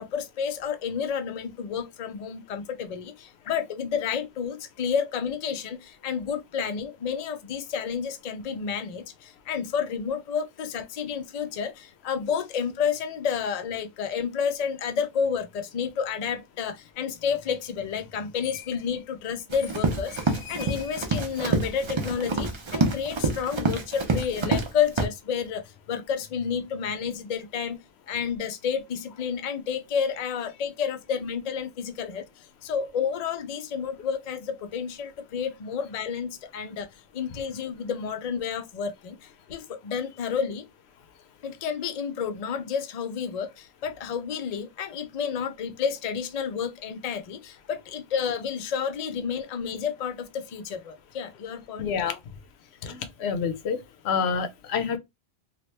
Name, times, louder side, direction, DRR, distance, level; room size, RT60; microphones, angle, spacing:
voice 1, 0.0-36.9 37.1-40.7 41.4-51.9, left 7 dB, 50° left, 0.5 m, -30 dB
Run, 19.5-24.7 25.0-25.1, right 3 dB, 35° right, 0.5 m, -27 dB
voice 2, 51.8-52.2 52.8-53.8 54.0-55.0, left 6 dB, 75° left, 0.9 m, -27 dB
2.9 x 2.4 x 3.2 m
omnidirectional pair, 1.1 m